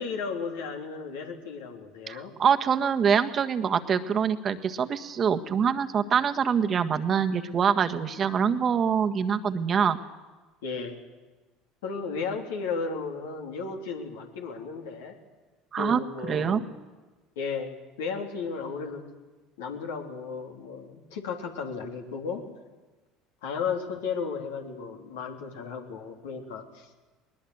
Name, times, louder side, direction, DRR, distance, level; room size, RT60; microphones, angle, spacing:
voice 1, 0.0-2.3 10.6-11.0 11.8-15.2 15.7-16.6 17.4-19.1 19.6-22.4 23.4-27.0, left 5 dB, 75° left, 2 dB, 3.4 m, -34 dB
voice 2, 2.1-10.0 15.7-16.6, right 7 dB, 40° right, 7 dB, 1.6 m, -25 dB
21.0 x 21.0 x 8.1 m, 1.3 s
hypercardioid pair, 70°, 0 cm